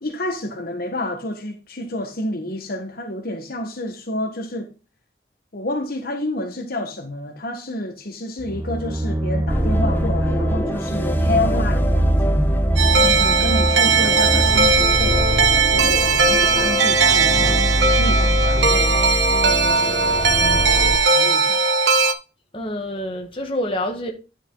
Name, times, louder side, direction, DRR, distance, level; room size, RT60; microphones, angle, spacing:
voice 1, 0.0-4.7 5.5-12.3 13.0-17.6 18.0-19.0 19.4-20.3 20.8-21.7, left 1 dB, 50° left, 1.3 m, -29 dB
sound 1, 8.4-16.1, right 1 dB, 15° right, 0.5 m, -25 dB
sound 2, 9.5-21.0, equal, 10° left, 0.8 m, -23 dB
sound 3, 12.8-22.1, right 4 dB, 70° right, 1.2 m, -18 dB
voice 2, 13.0-13.6 22.5-24.1, left 1 dB, 30° left, 1.6 m, -28 dB
10.0 x 5.4 x 3.8 m
head